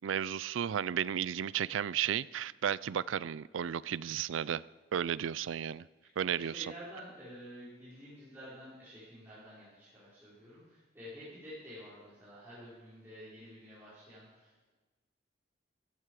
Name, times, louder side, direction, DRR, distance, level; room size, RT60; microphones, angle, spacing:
voice 1, 0.0-4.6 4.9-5.8 6.2-6.7, right 9 dB, 90° right, 0.4 m, -33 dB
voice 2, 6.2-14.7, equal, 10° right, 5.0 m, -50 dB
14.5 x 14.0 x 4.9 m
head